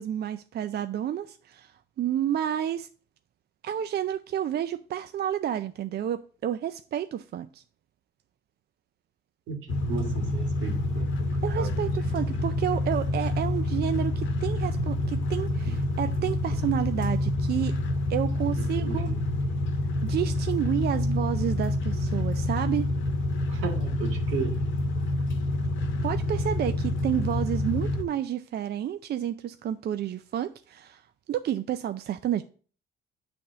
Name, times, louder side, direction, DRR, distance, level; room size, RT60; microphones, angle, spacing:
voice 1, 0.0-2.9 3.6-7.6 11.4-17.7 18.1-19.1 20.0-22.9 26.0-31.0 31.3-32.4, right 10 dB, 55° right, 0.4 m, -30 dB
voice 2, 9.5-11.3 11.5-12.3 15.7-15.8 16.5-16.6 18.6-19.2 23.5-24.6, right 6 dB, 85° right, 1.8 m, -35 dB
sound 1, 9.7-28.0, left 2 dB, 75° left, 0.9 m, -28 dB
8.5 x 3.5 x 6.7 m
cardioid pair, 90°, 20 cm